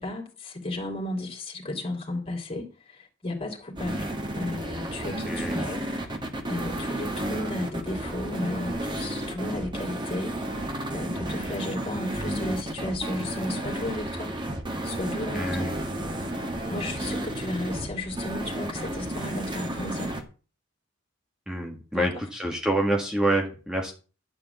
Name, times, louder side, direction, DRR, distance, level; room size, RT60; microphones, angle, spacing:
voice 1, 0.0-4.1 4.3-6.1 6.5-10.4 10.9-14.3 14.8-15.7 16.7-20.2 21.9-22.2, left 1 dB, 25° left, 3.3 m, -34 dB
sound 1, 3.8-20.2, right 1 dB, 20° right, 1.6 m, -32 dB
voice 2, 5.2-5.7 15.3-15.8 21.5-23.9, right 1 dB, 5° right, 1.7 m, -27 dB
11.5 x 5.1 x 8.2 m
head